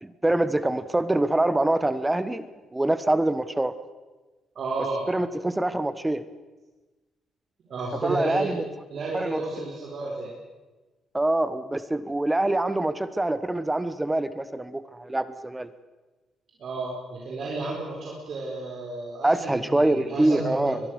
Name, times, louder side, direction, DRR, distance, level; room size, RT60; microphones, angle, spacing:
voice 1, 0.0-2.5 2.7-3.7 5.1-6.2 8.0-8.6 9.1-9.4 11.1-15.7 19.2-20.8, right 1 dB, 10° right, 13 dB, 1.2 m, -25 dB
voice 2, 4.5-5.0 7.7-8.6 8.9-10.3 16.6-20.8, right 3 dB, 55° right, -2 dB, 4.7 m, -32 dB
23.0 x 21.5 x 6.5 m, 1.2 s
cardioid pair, 90°, 0 cm